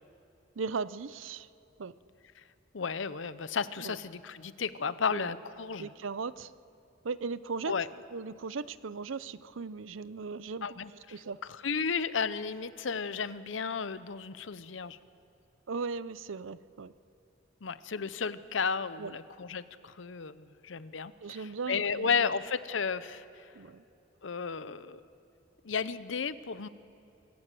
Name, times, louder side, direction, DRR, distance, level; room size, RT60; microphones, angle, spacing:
voice 1, 0.6-1.5 1.8-1.9 3.8-4.0 5.1-5.3 5.8-6.5 7.0-7.7 8.1-10.8 11.1-11.4 15.7-16.9 19.0-19.1 21.2-22.3 23.5-23.8, right 4 dB, 85° right, 16 dB, 0.6 m, -37 dB
voice 2, 2.7-5.9 7.7-7.9 10.6-11.2 11.5-15.0 17.6-23.5 24.2-25.0 25.6-26.7, left 5 dB, 70° left, 15 dB, 0.7 m, -33 dB
26.0 x 14.5 x 7.7 m, 2.9 s
head